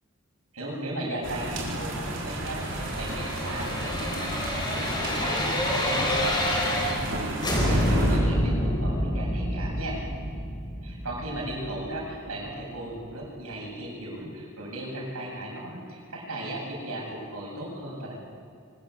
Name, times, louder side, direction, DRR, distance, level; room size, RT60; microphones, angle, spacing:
voice 1, 0.5-5.5 5.8-7.4 7.7-10.0 10.8-18.1, right 1 dB, 90° right, -2 dB, 7.6 m, -36 dB
sound 1, 1.2-8.2, right 1 dB, 60° right, 4.6 m, -32 dB
sound 2, 2.4-7.1 7.4-12.3 12.6-12.7, left 1 dB, 20° left, 4.2 m, -28 dB
23.5 x 20.0 x 8.0 m, 2.3 s
head